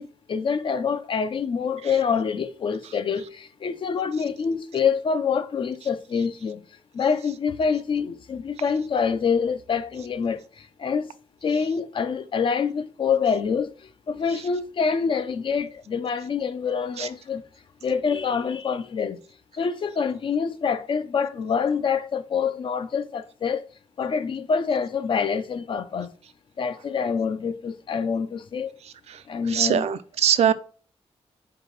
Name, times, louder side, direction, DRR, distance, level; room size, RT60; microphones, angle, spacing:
voice 1, 0.0-6.6 6.9-11.1 11.4-13.7 14.1-17.4 17.8-19.2 19.5-23.6 24.0-26.1 26.6-28.7 29.3-29.9 30.5-30.6, left 6 dB, 50° left, 0.5 m, -26 dB
voice 2, 29.5-30.5, right 9 dB, 75° right, 0.4 m, -21 dB
4.8 x 2.8 x 3.8 m
wide cardioid pair, 150°, 11 cm